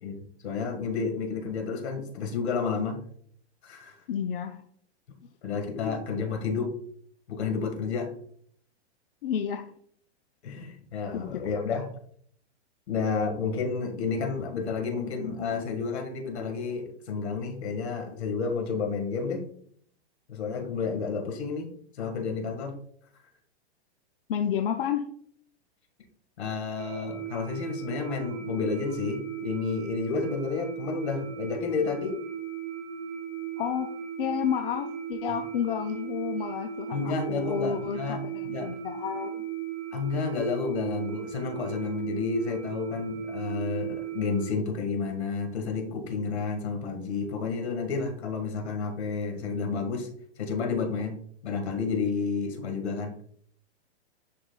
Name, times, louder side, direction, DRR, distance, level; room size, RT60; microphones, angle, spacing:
voice 1, 0.0-3.0 3.6-4.0 5.4-6.7 7.3-8.1 10.4-11.9 12.9-19.5 20.3-22.8 26.4-32.2 36.9-38.7 39.9-50.1 50.4-51.2 51.4-53.1, left 5 dB, 70° left, 4 dB, 1.8 m, -31 dB
voice 2, 4.1-4.6 5.8-6.0 9.2-9.7 11.1-11.4 24.3-25.0 33.6-33.9 34.2-39.4, left 8 dB, 55° left, 6 dB, 0.5 m, -31 dB
sound 1, 26.8-44.5, right 8 dB, 85° right, 0.9 m, -37 dB
10.5 x 3.9 x 2.3 m, 0.62 s
hypercardioid pair, 160°, 33 cm